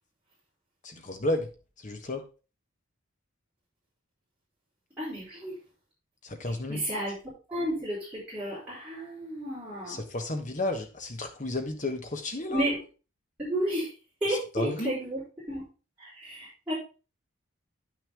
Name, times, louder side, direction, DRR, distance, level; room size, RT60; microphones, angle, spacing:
voice 1, 0.8-1.5 1.8-2.2 6.2-6.8 9.9-12.6 14.3-14.9, left 2 dB, 35° left, 5 dB, 1.2 m, -32 dB
voice 2, 5.0-5.5 6.7-7.1 7.5-10.0 12.5-12.8 13.4-13.9 14.2-15.2 15.5-15.6 16.0-16.7, right 1 dB, 5° right, -12 dB, 5.0 m, -32 dB
9.6 x 6.1 x 3.7 m, 0.33 s
head